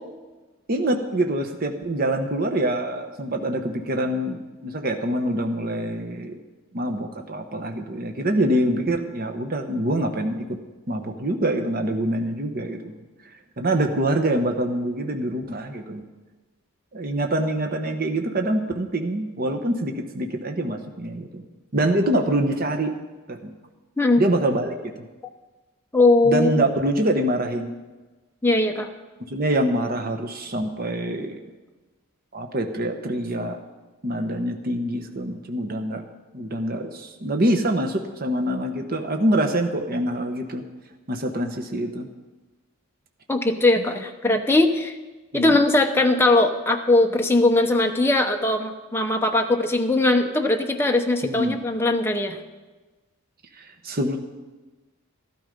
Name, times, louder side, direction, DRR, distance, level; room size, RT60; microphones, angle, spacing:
voice 1, 0.7-6.4 6.7-10.4 10.9-13.0 13.2-16.0 16.9-21.4 21.7-22.9 23.3-23.5 24.2-25.0 26.2-27.7 29.3-31.4 32.3-33.6 34.0-36.0 36.3-40.6 41.1-42.1 45.3-45.6 51.2-51.6 53.5-54.2, right 1 dB, 45° right, 5 dB, 1.0 m, -25 dB
voice 2, 25.9-26.5 28.4-28.9 43.3-44.9 45.3-52.4, left 2 dB, 10° left, 3 dB, 0.8 m, -20 dB
13.5 x 12.5 x 5.2 m, 1.2 s
head